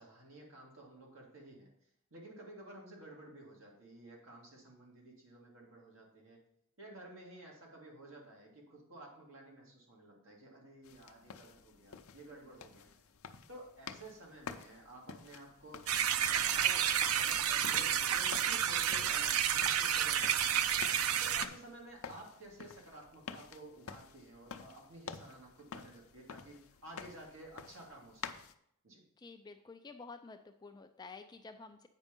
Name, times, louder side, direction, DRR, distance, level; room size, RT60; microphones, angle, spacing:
voice 1, 0.0-1.7 2.1-6.4 6.8-12.9 13.5-28.3 28.8-29.0, right 1 dB, 65° right, -2 dB, 2.3 m, -53 dB
sound 1, 10.8-28.5, left 6 dB, 75° left, 0.6 m, -50 dB
sound 2, 15.9-21.4, right 9 dB, 90° right, 0.5 m, -30 dB
voice 2, 29.2-31.9, left 4 dB, 20° left, 7 dB, 0.3 m, -51 dB
8.3 x 5.3 x 5.2 m, 0.73 s
head